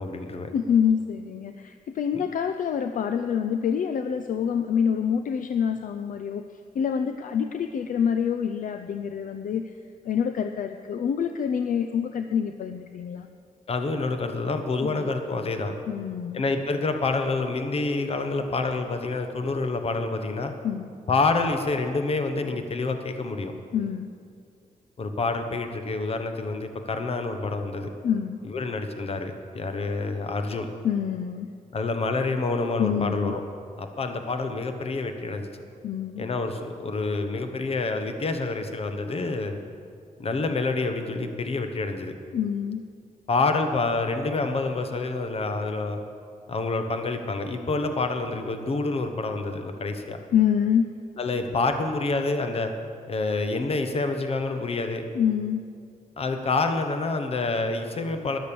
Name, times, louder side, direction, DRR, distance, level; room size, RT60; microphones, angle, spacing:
voice 1, 0.0-0.5 2.1-2.2 13.7-15.8 16.3-20.5 21.1-23.5 25.0-27.9 28.5-30.7 31.7-33.4 33.8-35.5 36.2-39.6 40.2-42.1 43.3-46.0 46.5-50.2 51.2-52.7 53.1-55.0 56.2-58.4, left 3 dB, 40° left, 7 dB, 1.1 m, -27 dB
voice 2, 0.5-6.5 6.7-9.7 10.0-13.3 14.8-14.9 15.9-16.4 20.6-20.9 23.7-24.1 28.0-28.4 30.8-31.5 32.8-33.3 35.8-36.3 42.3-42.8 50.3-51.0 55.1-55.7, left 8 dB, 60° left, 8 dB, 0.5 m, -26 dB
13.0 x 10.5 x 7.0 m, 2.4 s
wide cardioid pair, 175°, 15 cm